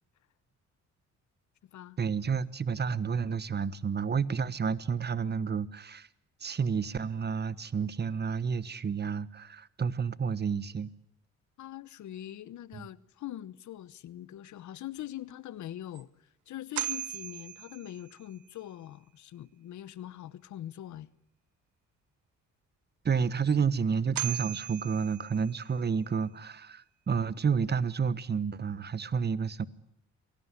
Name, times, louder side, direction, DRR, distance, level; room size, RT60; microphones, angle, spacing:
voice 1, 2.0-6.1 6.4-10.9 12.7-12.9 23.0-29.7, right 6 dB, 35° right, 1.2 m, -30 dB
voice 2, 11.6-21.1, left 12 dB, 70° left, 1.1 m, -43 dB
sound 1, 15.3-15.4 15.9-16.0 16.8-18.4 23.5-23.6 24.2-25.8, right 14 dB, 80° right, 1.2 m, -38 dB
27.0 x 18.0 x 9.7 m
cardioid pair, 90°, 30 cm